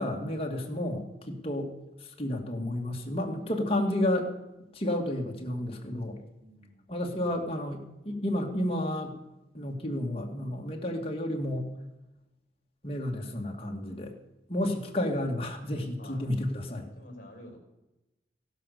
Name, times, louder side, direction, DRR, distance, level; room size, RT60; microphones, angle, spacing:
voice 1, 0.0-1.7 2.2-4.3 4.8-6.2 6.9-9.1 9.5-11.7 12.8-14.1 14.5-16.9, left 1 dB, 35° left, 1 dB, 2.3 m, -31 dB
voice 2, 6.4-6.8 7.1-7.5 16.0-16.2 17.0-17.6, left 1 dB, 50° left, 2 dB, 5.6 m, -49 dB
16.0 x 12.0 x 6.8 m, 0.98 s
head